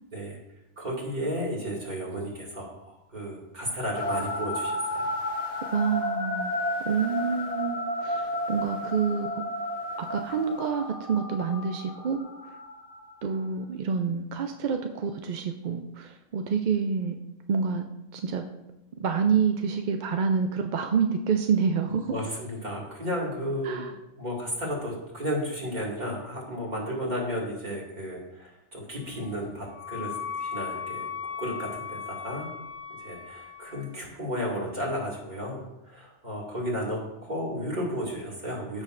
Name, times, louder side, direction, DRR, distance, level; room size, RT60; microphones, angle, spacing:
voice 1, 0.8-5.1 22.1-31.1 31.4-32.5 33.0-38.8, equal, 35° right, -4 dB, 2.3 m, -33 dB
sound 1, 4.0-13.4, left 1 dB, 70° left, 1.4 m, -32 dB
voice 2, 5.6-6.6 6.8-9.4 10.0-12.2 13.2-17.1 17.5-17.8 18.1-18.4 19.0-22.2 23.6-23.9, right 6 dB, 55° right, 5 dB, 0.5 m, -27 dB
Wind instrument woodwind instrument, 29.1-33.9, left 7 dB, 30° left, 1.4 m, -37 dB
14.0 x 6.3 x 2.5 m, 0.92 s
omnidirectional pair, 1.3 m